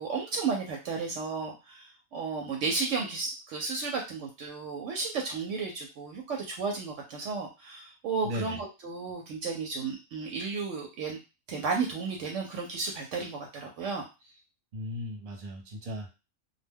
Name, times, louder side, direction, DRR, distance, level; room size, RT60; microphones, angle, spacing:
voice 1, 0.0-11.2 11.5-14.0, right 4 dB, 70° right, 1 dB, 0.9 m, -33 dB
voice 2, 8.2-8.6 14.7-16.1, left 1 dB, 45° right, 0 dB, 0.9 m, -36 dB
2.3 x 2.1 x 3.4 m, 0.28 s
omnidirectional pair, 1.3 m